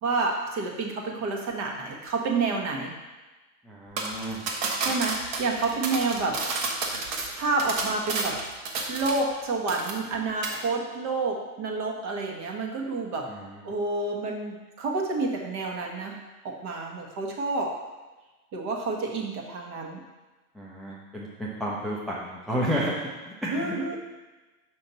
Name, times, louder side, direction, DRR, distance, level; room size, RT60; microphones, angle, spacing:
voice 1, 0.0-2.9 4.8-6.4 7.3-8.4 8.9-13.3 13.6-17.7 18.5-20.0 23.5-24.0, right 3 dB, 35° right, 1 dB, 1.2 m, -29 dB
voice 2, 3.6-4.4 13.3-13.6 20.5-24.0, equal, ahead, -5 dB, 0.5 m, -32 dB
sound 1, 4.0-9.4 9.7-10.2 10.4-10.6, right 3 dB, 60° right, 1.4 m, -31 dB
5.7 x 5.7 x 4.0 m, 1.2 s
hypercardioid pair, 120°, 45 cm